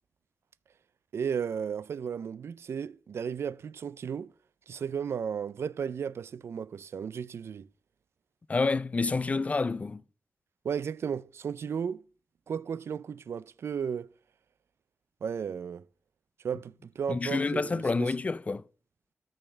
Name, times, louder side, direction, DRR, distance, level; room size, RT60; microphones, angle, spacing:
voice 1, 1.1-4.3 4.7-7.7 10.6-12.1 12.5-14.1 15.2-15.9 16.4-18.1, right 7 dB, 85° right, 0.3 m, -34 dB
voice 2, 8.5-10.0 17.1-18.6, left 3 dB, 35° left, 0.3 m, -28 dB
6.4 x 6.4 x 5.7 m
wide cardioid pair, 130°, 4 cm